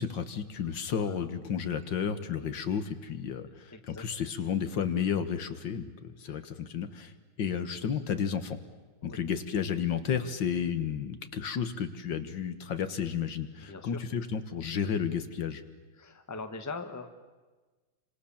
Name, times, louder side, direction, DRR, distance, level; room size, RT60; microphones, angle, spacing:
voice 1, 0.0-8.6 9.0-15.6, left 7 dB, 65° left, 10 dB, 1.9 m, -32 dB
voice 2, 3.7-4.0 6.3-6.4 9.0-9.2 13.6-14.0 16.0-17.1, left 3 dB, 10° left, 7 dB, 1.3 m, -41 dB
29.5 x 26.0 x 7.2 m, 1.3 s
omnidirectional pair, 2.2 m